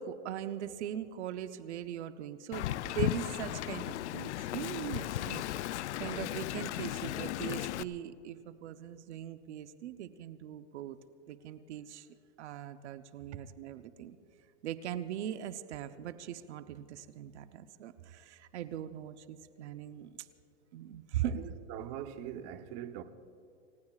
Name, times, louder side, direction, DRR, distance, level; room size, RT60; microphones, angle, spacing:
voice 1, 0.0-11.0 11.3-12.1 12.4-14.2 14.6-20.3 20.7-21.4, right 10 dB, 80° right, 0.9 m, -40 dB
Wind, 2.5-7.8, left 14 dB, 90° left, 0.5 m, -36 dB
voice 2, 21.2-23.0, right 11 dB, 40° right, 0.9 m, -42 dB
29.0 x 17.0 x 2.4 m
supercardioid pair, 145°, 34 cm